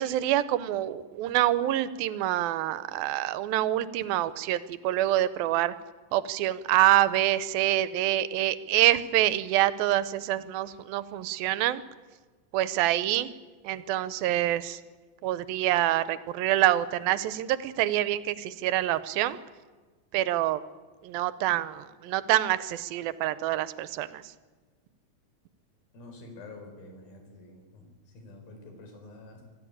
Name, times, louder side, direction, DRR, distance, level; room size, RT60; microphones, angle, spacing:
voice 1, 0.0-5.7 6.1-11.8 12.5-13.3 13.6-14.8 15.2-19.4 20.1-20.6 21.0-24.2, right 14 dB, 90° right, 15 dB, 2.6 m, -26 dB
voice 2, 25.9-27.9 28.1-29.4, left 2 dB, 90° left, 4 dB, 6.2 m, -47 dB
25.5 x 14.0 x 8.7 m, 1.3 s
omnidirectional pair, 4.1 m